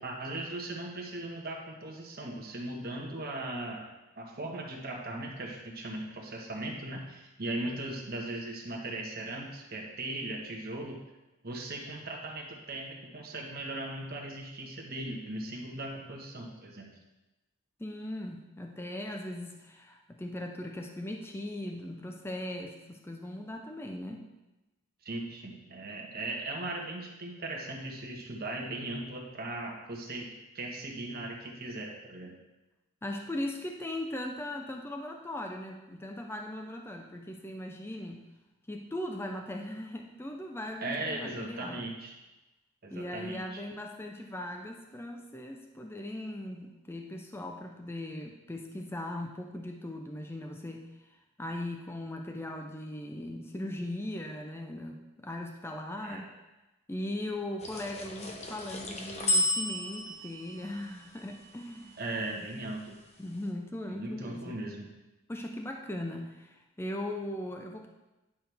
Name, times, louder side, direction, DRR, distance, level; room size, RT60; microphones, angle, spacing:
voice 1, 0.0-3.9 4.2-11.0 11.4-16.9 25.0-32.3 40.8-42.2 42.8-43.6 56.0-56.2 62.0-63.0 63.9-64.9, right 2 dB, 45° right, 0 dB, 1.3 m, -38 dB
voice 2, 17.8-24.3 33.0-38.2 38.7-41.9 42.9-50.9 51.4-56.3 56.9-62.0 63.2-64.4 65.3-67.9, left 1 dB, 10° left, 2 dB, 0.5 m, -39 dB
sound 1, 57.6-62.2, left 1 dB, 30° left, 0.9 m, -33 dB
10.0 x 6.1 x 3.4 m, 1.0 s
head